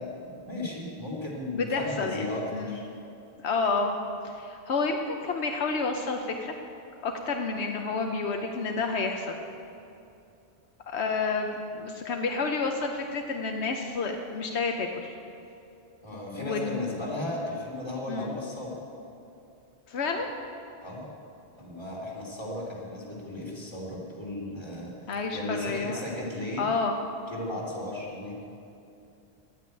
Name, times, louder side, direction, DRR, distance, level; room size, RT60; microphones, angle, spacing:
voice 1, 0.0-2.8 16.0-18.8 20.8-21.1 21.5-26.6 27.3-28.4, left 1 dB, 25° left, -5 dB, 3.0 m, -35 dB
voice 2, 1.5-2.2 2.5-2.8 3.4-4.0 4.2-6.5 7.0-9.4 10.9-15.1 16.1-17.0 18.1-18.3 19.9-20.3 25.1-26.1 26.6-26.9, left 4 dB, 80° left, 3 dB, 1.1 m, -30 dB
11.0 x 9.3 x 9.0 m, 2.7 s
omnidirectional pair, 1.1 m